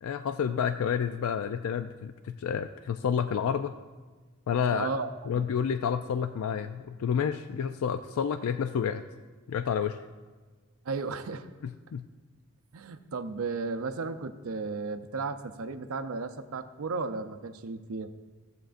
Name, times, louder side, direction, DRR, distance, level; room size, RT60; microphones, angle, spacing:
voice 1, 0.0-3.7 4.5-4.9 5.3-9.0 9.5-10.0 11.9-12.0, left 7 dB, 80° left, 9 dB, 0.3 m, -29 dB
voice 2, 4.7-5.4 10.8-11.5 12.7-18.1, right 4 dB, 80° right, 10 dB, 0.6 m, -34 dB
16.5 x 7.7 x 2.5 m, 1.4 s
head